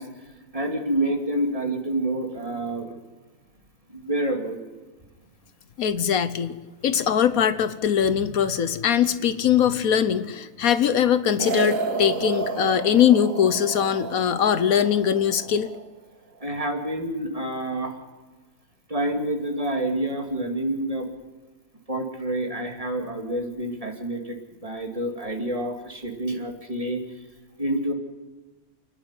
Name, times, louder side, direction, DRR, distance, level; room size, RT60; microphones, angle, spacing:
voice 1, 0.0-3.0 3.9-4.6 6.9-7.0 8.0-8.2 16.4-18.0 18.9-21.1 21.9-27.2 27.6-27.9, right 1 dB, 25° right, 2 dB, 2.7 m, -28 dB
voice 2, 5.8-6.6 6.8-15.7, left 8 dB, 75° left, 13 dB, 1.3 m, -21 dB
sound 1, 11.4-15.9, right 4 dB, 65° right, 1.8 m, -31 dB
28.5 x 10.0 x 9.8 m, 1.3 s
omnidirectional pair, 1.5 m